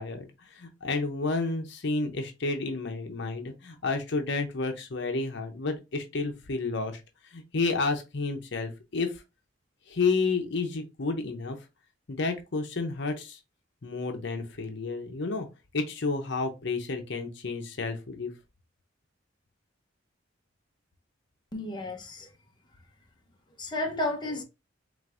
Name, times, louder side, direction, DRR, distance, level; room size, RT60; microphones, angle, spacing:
voice 1, 0.0-7.0 7.3-9.2 9.9-11.6 12.1-13.4 13.8-15.5 15.7-18.3, left 3 dB, 65° left, 0.8 m, -31 dB
voice 2, 21.5-22.3 23.6-24.4, left 2 dB, 25° left, 0.9 m, -32 dB
5.1 x 3.3 x 2.5 m
head